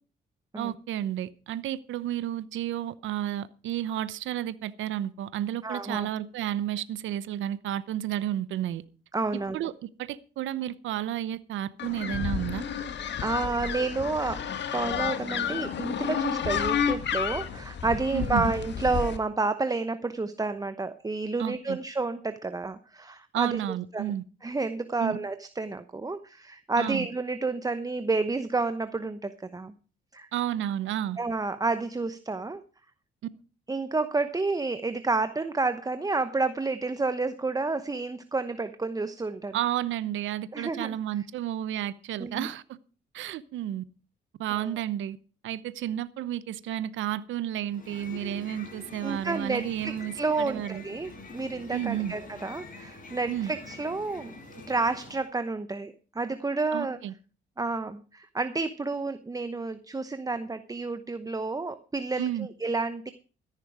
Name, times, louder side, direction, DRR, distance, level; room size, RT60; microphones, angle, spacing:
voice 1, 0.6-8.8 9.5-9.7 10.0-12.6 18.1-18.5 21.4-21.8 23.3-24.2 25.0-25.2 26.8-27.1 30.3-31.2 39.5-42.8 43.1-43.8 44.4-45.2 45.4-50.8 51.7-52.1 53.3-53.5 56.7-57.1 62.2-62.5, right 11 dB, 80° right, 16 dB, 0.8 m, -31 dB
voice 2, 5.6-6.1 9.1-9.6 13.2-14.4 14.7-24.1 24.4-29.7 30.1-30.3 31.2-32.6 33.7-39.6 40.5-41.0 42.2-42.5 44.5-44.7 49.0-54.4 54.7-57.0 57.6-63.1, right 3 dB, 20° right, 11 dB, 0.9 m, -30 dB
sound 1, 11.8-19.2, left 7 dB, 60° left, 1.8 m, -31 dB
sound 2, 47.6-55.3, left 3 dB, 45° left, 5.8 m, -45 dB
13.5 x 10.5 x 4.9 m, 0.37 s
cardioid pair, 90°, 20 cm